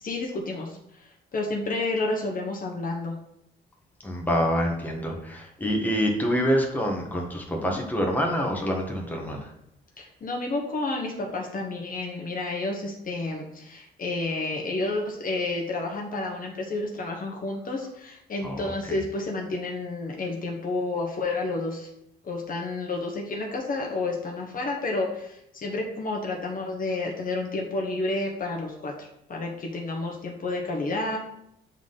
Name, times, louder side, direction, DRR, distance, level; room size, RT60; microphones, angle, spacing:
voice 1, 0.0-3.1 7.7-7.8 10.0-21.9 22.2-31.2, left 2 dB, 45° left, 0 dB, 1.2 m, -30 dB
voice 2, 4.0-9.5 18.4-18.6 18.9-19.0, equal, 10° left, 0 dB, 1.3 m, -26 dB
7.1 x 3.8 x 4.0 m, 0.76 s
cardioid pair, 90°, 20 cm